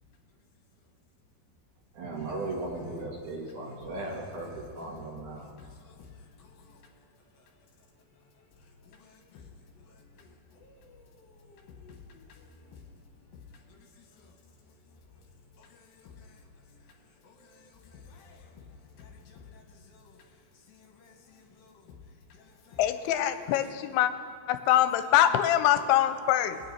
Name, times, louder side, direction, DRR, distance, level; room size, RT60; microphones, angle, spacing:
voice 1, 1.9-5.5, right 2 dB, 60° right, 2.9 m, -37 dB
voice 2, 5.4-6.1 6.4-6.8 8.4-8.5 8.8-9.5 9.9-12.8 13.7-14.3 15.6-16.4 17.2-18.7 19.0-20.2 20.7-21.8 22.3-22.8, left 5 dB, 70° left, 2.9 m, -54 dB
voice 3, 22.8-24.1 24.5-26.6, left 12 dB, 85° left, 2.6 m, -24 dB
22.0 x 9.1 x 4.3 m
omnidirectional pair, 4.5 m